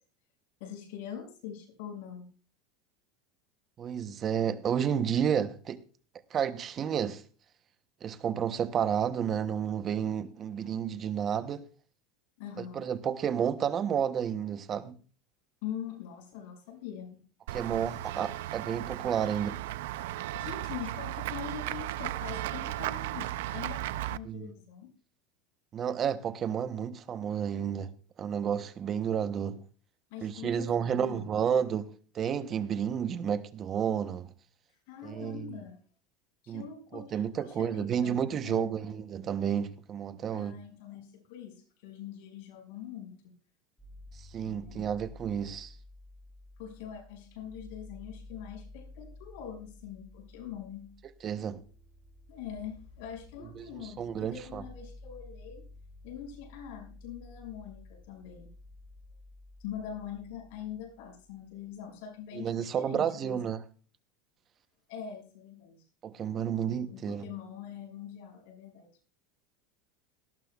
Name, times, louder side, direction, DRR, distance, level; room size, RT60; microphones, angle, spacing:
voice 1, 0.6-2.3 12.4-12.9 15.6-17.2 20.2-24.9 30.1-31.7 34.9-35.8 36.4-38.7 40.3-43.3 44.4-44.9 46.6-50.9 52.3-55.6 56.0-58.5 59.6-63.5 64.9-65.8 66.9-68.9, left 9 dB, 65° left, 5.7 m, -43 dB
voice 2, 3.8-5.8 6.3-7.2 8.0-11.6 12.6-15.0 17.5-19.6 24.2-24.5 25.7-27.9 28.2-29.6 30.2-31.9 32.1-34.3 35.0-35.6 36.5-36.6 36.9-40.6 44.3-45.7 51.2-51.6 53.6-54.6 62.3-63.6 66.0-67.3, right 8 dB, 30° right, 0.8 m, -31 dB
Run / Walk footsteps / Bell, 17.5-24.2, right 15 dB, 75° right, 0.5 m, -36 dB
sound 1, 43.8-61.7, left 2 dB, 5° left, 6.0 m, -52 dB
18.0 x 13.0 x 2.3 m
supercardioid pair, 150°, 0 cm